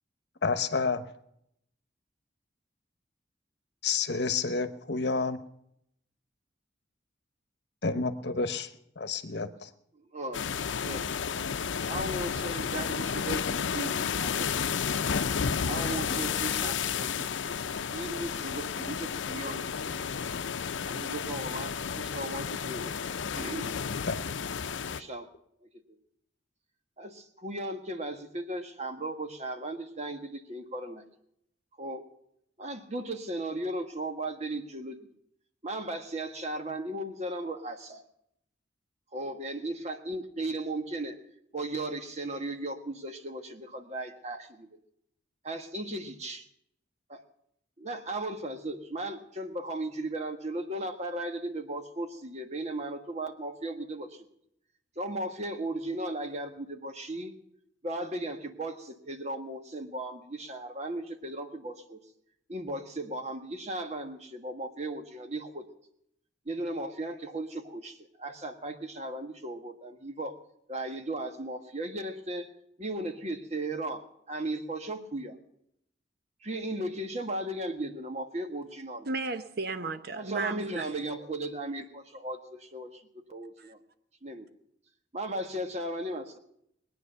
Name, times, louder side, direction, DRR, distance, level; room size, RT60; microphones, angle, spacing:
voice 1, 0.4-1.0 3.8-5.4 7.8-9.7 13.2-13.7 14.5-14.7 19.8-19.9 20.4-20.5 24.1-24.2, left 4 dB, 65° left, 1.1 m, -30 dB
voice 2, 9.9-10.4 10.8-11.1 11.9-14.7 15.6-17.5 17.9-19.9 20.8-23.0 23.3-23.7 24.9-25.3 25.9-26.0 27.0-31.0 31.8-32.0 32.6-35.0 35.6-38.0 39.1-41.2 41.5-44.8 45.4-46.5 47.1-47.2 47.8-54.2 54.9-57.3 57.8-62.0 62.5-65.6 66.4-70.4 70.7-72.5 72.8-75.3 76.4-79.1 80.1-83.8 84.2-84.5 85.1-86.4, right 1 dB, 35° right, 1.5 m, -36 dB
sound 1, 10.3-25.0, left 6 dB, 90° left, 0.6 m, -32 dB
voice 3, 79.1-80.8 83.6-83.7, right 3 dB, 55° right, 0.9 m, -34 dB
21.0 x 9.5 x 6.9 m
head